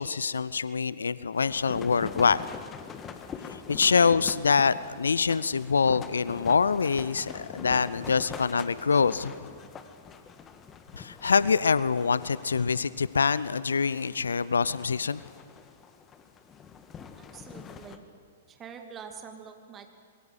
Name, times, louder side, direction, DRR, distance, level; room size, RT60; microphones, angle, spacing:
voice 1, 0.0-2.5 3.5-9.6 11.0-15.2, left 5 dB, 70° left, 18 dB, 0.6 m, -25 dB
sound 1, 1.3-18.0, left 6 dB, 20° left, 1.6 m, -44 dB
voice 2, 17.2-18.0 18.5-19.9, right 7 dB, 20° right, 5 dB, 2.6 m, -45 dB
25.0 x 21.5 x 8.1 m, 2.3 s
figure-of-eight pair, 110°, 0 cm